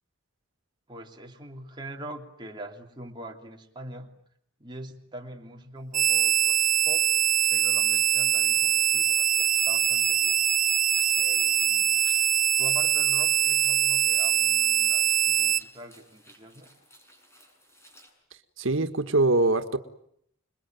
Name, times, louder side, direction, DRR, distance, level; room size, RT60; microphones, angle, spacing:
voice 1, 0.9-4.1 4.6-7.1 7.5-10.4 11.1-12.0 12.6-16.7, right 1 dB, 25° right, 1 dB, 3.2 m, -43 dB
sound 1, 5.9-15.6, right 10 dB, 40° right, 1.0 m, -23 dB
sound 2, 6.6-18.1, equal, 15° left, 7.2 m, -56 dB
voice 2, 18.6-19.8, right 2 dB, 85° right, 7 dB, 1.6 m, -23 dB
27.5 x 22.0 x 9.2 m, 0.71 s
head